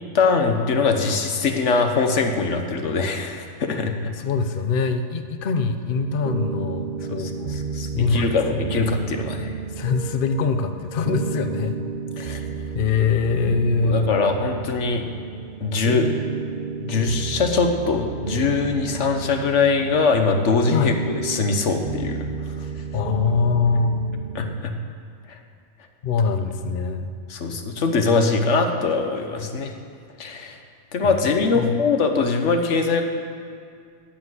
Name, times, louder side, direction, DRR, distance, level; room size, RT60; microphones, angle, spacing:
voice 1, 0.1-4.1 7.1-9.5 12.2-12.4 13.8-15.0 15.6-16.1 16.8-22.3 24.3-24.7 27.3-29.7 30.2-30.6 30.9-33.0, left 4 dB, 80° left, 5 dB, 1.4 m, -22 dB
voice 2, 4.1-7.6 7.9-8.6 9.8-11.8 12.2-14.2 20.7-20.9 22.9-24.1 26.0-27.1 31.5-31.7, left 5 dB, 55° left, 8 dB, 0.8 m, -23 dB
sound 1, 5.9-24.6, right 5 dB, 60° right, 0.6 m, -32 dB
10.5 x 9.8 x 8.0 m, 2.3 s
omnidirectional pair, 1.2 m